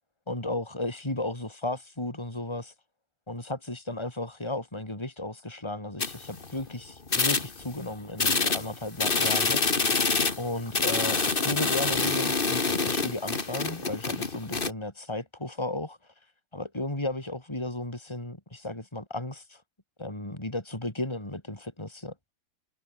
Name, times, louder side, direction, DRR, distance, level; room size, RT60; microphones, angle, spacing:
voice 1, 0.3-2.7 3.3-9.7 10.4-16.0 16.5-19.6 20.0-22.3, left 2 dB, 15° left, 4.3 m, -34 dB
sound 1, 6.0-6.7 7.1-7.8 8.2-14.7, left 4 dB, 35° left, 2.0 m, -26 dB
omnidirectional pair, 1.7 m